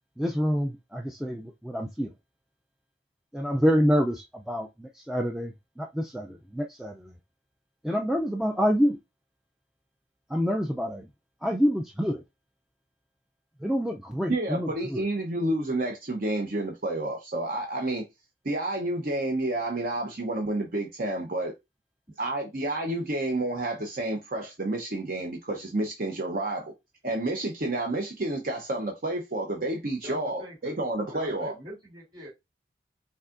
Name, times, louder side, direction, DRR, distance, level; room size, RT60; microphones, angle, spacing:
voice 1, 0.2-2.1 3.3-7.1 7.8-9.0 10.3-11.1 11.4-12.2 13.6-15.0, equal, 5° right, 0.3 m, -27 dB
voice 2, 14.3-18.0 18.4-21.5 22.2-26.7 27.0-31.5, right 1 dB, 50° right, 0.8 m, -30 dB
voice 3, 30.0-30.8 31.1-32.3, equal, 25° right, 2.8 m, -44 dB
5.5 x 3.5 x 2.5 m
head